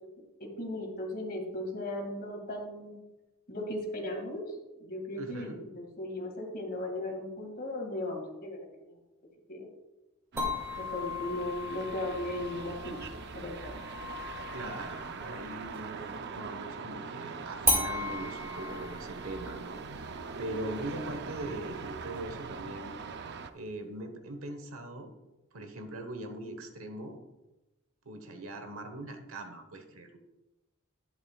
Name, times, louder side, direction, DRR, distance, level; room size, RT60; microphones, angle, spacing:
voice 1, 0.4-3.0 3.5-8.6 8.9-9.0 9.5-9.7 10.8-13.7, left 1 dB, 45° left, 2 dB, 2.2 m, -37 dB
voice 2, 5.2-5.6 14.5-20.0 20.4-23.0 23.5-25.1 25.5-27.2 28.0-30.2, right 1 dB, 75° right, 6 dB, 1.3 m, -41 dB
sound 1, 10.3-23.5, right 5 dB, 55° right, 0.6 m, -42 dB
sound 2, 10.4-16.0 17.6-22.6, left 1 dB, 15° right, 2.5 m, -37 dB
11.0 x 11.0 x 2.4 m, 1.0 s
head